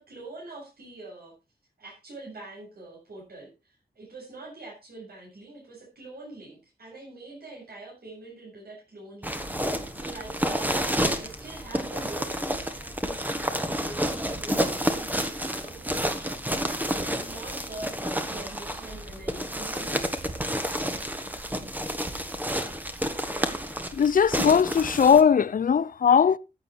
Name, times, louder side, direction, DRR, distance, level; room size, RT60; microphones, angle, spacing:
voice 1, 0.0-1.3 1.8-20.6, right 2 dB, 70° right, 7.3 m, -44 dB
sound 1, 9.2-25.2, equal, 10° right, 1.6 m, -30 dB
voice 2, 23.9-26.4, left 7 dB, 60° left, 0.5 m, -19 dB
15.0 x 8.8 x 4.5 m
wide cardioid pair, 150°, 16 cm